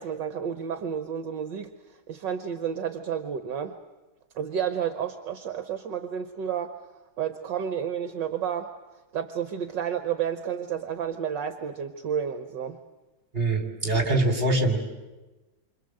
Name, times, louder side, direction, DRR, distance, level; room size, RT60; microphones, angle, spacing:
voice 1, 0.0-1.7 2.1-3.7 4.4-6.8 7.2-8.7 9.1-12.8, right 8 dB, 65° right, 8 dB, 1.7 m, -31 dB
voice 2, 13.3-14.8, right 2 dB, 25° right, 5 dB, 3.8 m, -23 dB
28.5 x 26.0 x 7.8 m, 1.1 s
omnidirectional pair, 2.2 m